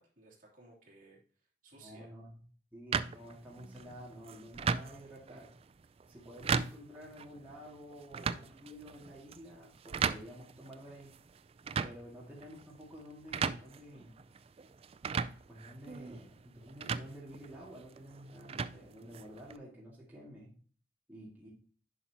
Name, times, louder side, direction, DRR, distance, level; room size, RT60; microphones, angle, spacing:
voice 1, 0.0-2.1, right 2 dB, 50° right, -4 dB, 2.9 m, -59 dB
voice 2, 1.7-2.4 2.7-5.5 6.1-11.1 11.8-14.1 15.5-20.5 21.1-21.5, equal, 10° right, -6 dB, 2.1 m, -50 dB
sound 1, 2.9-19.6, right 5 dB, 35° right, 0.3 m, -39 dB
10.5 x 5.6 x 2.9 m, 0.43 s
head